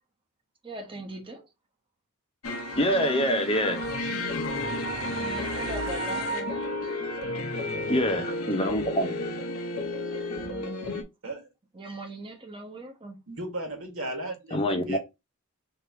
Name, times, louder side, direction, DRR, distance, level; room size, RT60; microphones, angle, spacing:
voice 1, 0.6-1.5 5.0-6.7 10.3-11.0 11.7-13.2, right 1 dB, 25° right, 1.1 m, -40 dB
sound 1, 2.4-11.0, left 1 dB, 80° left, 1.0 m, -32 dB
voice 2, 2.8-3.8 7.9-9.1 14.5-15.0, equal, 25° left, 0.8 m, -25 dB
voice 3, 13.3-15.0, right 1 dB, 70° right, 1.6 m, -35 dB
3.4 x 2.8 x 4.6 m
head